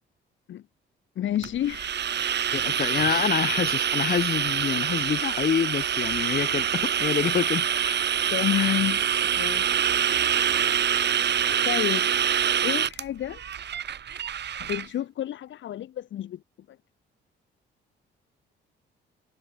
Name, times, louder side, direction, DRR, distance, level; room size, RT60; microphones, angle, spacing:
voice 1, 1.1-2.0 8.3-9.1 9.4-9.9 11.6-12.1 12.6-13.4 14.6-16.4 16.7-16.8, left 11 dB, 70° left, 3.3 m, -29 dB
sound 1, 1.4-14.9, right 9 dB, 60° right, 5.7 m, -25 dB
voice 2, 2.5-8.0 8.5-8.8, left 7 dB, 50° left, 6.4 m, -27 dB
cardioid pair, 90°, 20 cm